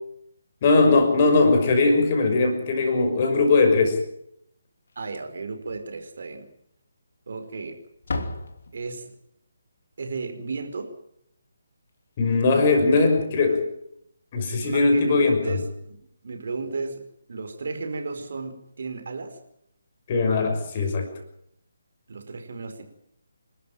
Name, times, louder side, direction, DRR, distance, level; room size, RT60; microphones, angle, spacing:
voice 1, 0.6-4.0 12.2-13.6 14.3-15.6 20.1-21.1, left 3 dB, 30° left, 4 dB, 6.0 m, -20 dB
Slam, 4.9-5.5 5.8-5.9 6.4-6.5 7.3-7.6 7.9-9.2 11.9-12.0 12.2-12.4 14.0-14.1, left 2 dB, 55° left, 2.9 m, -35 dB
voice 2, 4.9-6.5 7.3-7.8 8.7-9.1 10.0-10.9 13.5-13.6 14.6-15.6 15.9-17.0 17.3-19.4 22.1-22.8, right 4 dB, 50° right, 6 dB, 4.8 m, -34 dB
28.0 x 13.5 x 9.1 m, 0.74 s
figure-of-eight pair, 145°, 0 cm